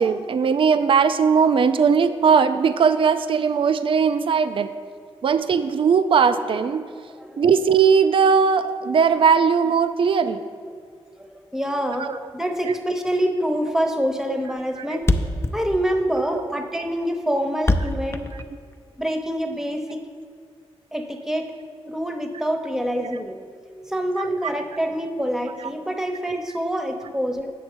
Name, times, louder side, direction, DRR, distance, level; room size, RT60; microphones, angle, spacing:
voice 1, 0.0-4.7 5.2-6.9 7.4-10.4 11.8-12.2 12.7-12.8 14.3-14.4 14.8-15.0 16.3-16.4 24.2-24.3 26.3-26.4, right 6 dB, 60° right, 11 dB, 0.4 m, -19 dB
voice 2, 11.2-15.1 15.5-18.3 19.0-20.0 20.9-21.5 21.9-27.5, equal, 5° right, 5 dB, 0.8 m, -26 dB
Thump thud, 13.6-13.8 14.1-14.2 14.4-14.5 14.7-14.8 15.0-19.0, left 2 dB, 25° left, 0.5 m, -24 dB
8.2 x 6.4 x 4.5 m, 2.1 s
cardioid pair, 65°, 10 cm